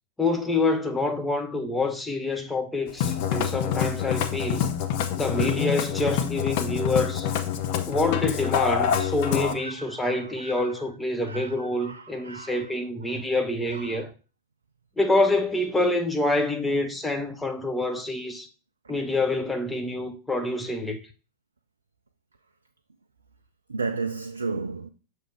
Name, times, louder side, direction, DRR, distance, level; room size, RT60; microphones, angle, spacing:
voice 1, 0.2-4.7 5.2-7.3 7.9-14.1 15.0-18.5 18.9-21.0, left 2 dB, 10° left, 0.8 m, -26 dB
Musical instrument, 2.9-9.5, left 9 dB, 45° left, 0.6 m, -26 dB
voice 2, 8.6-10.7 11.2-12.6 13.1-13.2 13.7-14.0 23.7-24.9, right 4 dB, 75° right, 0.4 m, -35 dB
6.5 x 3.3 x 4.6 m
figure-of-eight pair, 90°, 0 cm